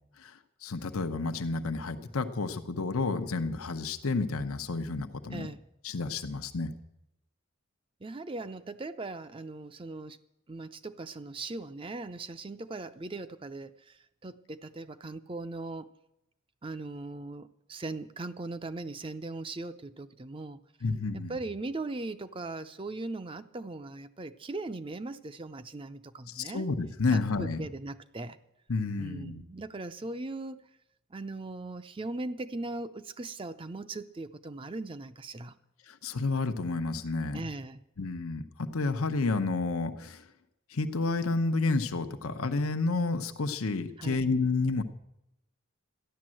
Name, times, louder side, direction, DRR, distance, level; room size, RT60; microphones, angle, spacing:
voice 1, 0.2-5.5 5.8-6.7 20.8-21.3 26.3-27.6 28.7-29.4 35.9-37.4 38.0-40.3 40.7-44.8, left 3 dB, 85° left, 8 dB, 0.9 m, -30 dB
voice 2, 8.0-10.2 10.5-15.9 16.6-20.6 21.3-26.7 27.1-28.4 29.0-30.7 31.1-35.6 37.3-37.8 44.0-44.3, right 2 dB, 25° right, 12 dB, 0.5 m, -39 dB
13.5 x 11.0 x 7.6 m, 0.87 s
head